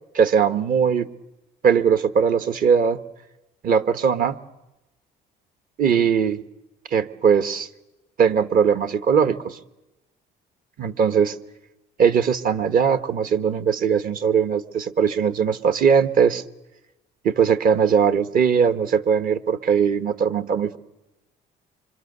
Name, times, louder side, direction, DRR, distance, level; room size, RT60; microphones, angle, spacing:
voice 1, 0.1-1.1 1.6-3.0 3.6-4.4 5.8-6.4 6.9-7.7 8.2-9.6 10.8-11.4 12.0-16.4 17.2-20.8, right 7 dB, 55° right, 10 dB, 1.4 m, -20 dB
26.0 x 25.5 x 6.8 m, 0.99 s
cardioid pair, 110°, 17 cm